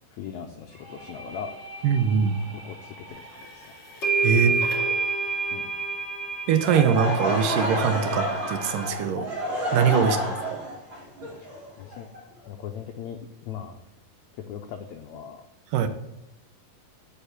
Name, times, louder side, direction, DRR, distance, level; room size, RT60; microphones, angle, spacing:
voice 1, 0.1-1.5 2.5-3.8 4.3-4.8 5.5-5.7 9.9-10.1 11.4-12.1 12.5-13.8 14.3-15.5, left 8 dB, 85° left, 5 dB, 1.6 m, -39 dB
sound 1, 0.7-6.3, equal, 25° right, 1.2 m, -46 dB
voice 2, 1.8-2.4 4.2-4.6 6.5-9.3 9.7-10.2 10.5-10.6 15.7-15.9, right 7 dB, 80° right, 9 dB, 2.2 m, -22 dB
sound 2, 3.4-3.5 4.0-8.9, right 4 dB, 35° left, 2.6 m, -28 dB
Laughter / Crowd, 6.5-12.5, equal, 40° right, 2.6 m, -29 dB
6.7 x 5.6 x 6.5 m, 0.90 s
omnidirectional pair, 3.9 m